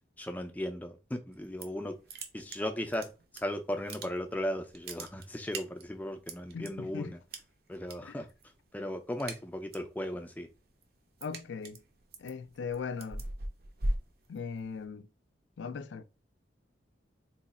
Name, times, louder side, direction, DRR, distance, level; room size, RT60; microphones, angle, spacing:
voice 1, 0.2-2.0 2.3-7.2 7.7-8.3 8.7-10.5, left 1 dB, 10° left, 0.4 m, -36 dB
sound 1, 1.3-3.4 3.7-4.4 4.7-6.7 7.3-7.9 8.2-8.6 8.9-9.9 10.3-14.8, right 1 dB, 55° right, 0.6 m, -39 dB
voice 2, 6.5-7.1 8.0-8.2 11.2-11.8 12.2-13.2 14.3-15.1 15.6-16.0, left 5 dB, 80° left, 0.4 m, -39 dB
3.0 x 2.4 x 4.1 m
head